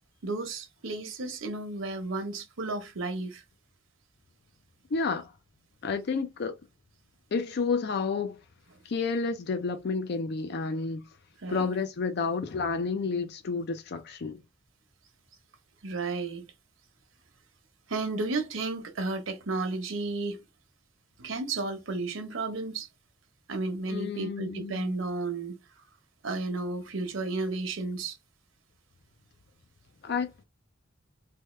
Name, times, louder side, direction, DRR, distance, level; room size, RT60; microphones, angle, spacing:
voice 1, 0.2-3.4 11.4-11.7 15.8-16.5 17.9-20.4 21.2-22.9 23.5-25.6 26.2-28.2, right 3 dB, 90° right, 0.8 m, -33 dB
voice 2, 4.9-5.3 5.8-6.5 7.3-8.4 8.8-11.1 11.5-14.4 23.9-24.9 30.0-30.4, left 4 dB, 55° left, 0.4 m, -30 dB
3.4 x 2.1 x 3.2 m
head